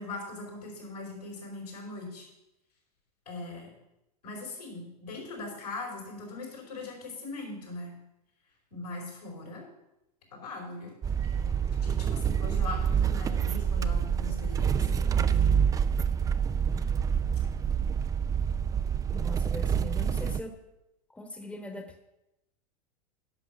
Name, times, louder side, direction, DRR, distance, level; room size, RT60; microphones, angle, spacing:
voice 1, 0.0-2.3 3.2-3.7 4.2-8.0 8.7-9.6 10.3-10.9 11.2-15.6, left 3 dB, 85° left, -2 dB, 4.8 m, -40 dB
sound 1, 11.0-20.4, right 7 dB, 15° right, 0.4 m, -27 dB
voice 2, 19.1-20.6 21.1-22.0, equal, 5° left, 6 dB, 1.2 m, -40 dB
10.5 x 6.1 x 6.9 m, 0.91 s
hypercardioid pair, 95°, 20 cm